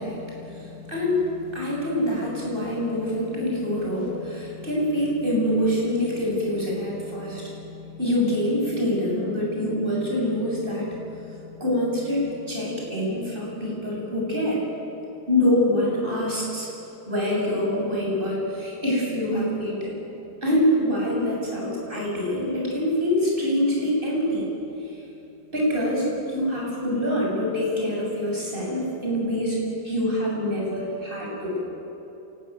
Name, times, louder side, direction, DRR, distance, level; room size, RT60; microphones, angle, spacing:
voice 1, 0.0-14.6 15.3-16.7 17.1-20.0 20.4-24.5 24.8-25.0 25.5-29.6 29.8-31.6, left 1 dB, 30° right, -3 dB, 8.1 m, -25 dB
26.5 x 19.5 x 9.4 m, 2.9 s
omnidirectional pair, 1.9 m